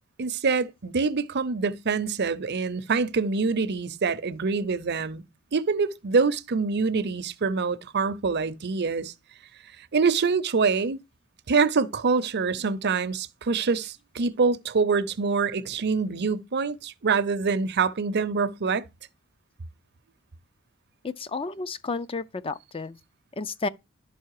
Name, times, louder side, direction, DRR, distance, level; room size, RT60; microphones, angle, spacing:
voice 1, 0.2-5.2 5.5-9.1 9.9-11.0 11.5-18.9, right 4 dB, 55° right, 0.7 m, -25 dB
voice 2, 21.3-22.9 23.4-23.7, left 3 dB, 25° left, 0.5 m, -31 dB
11.5 x 5.6 x 4.8 m
head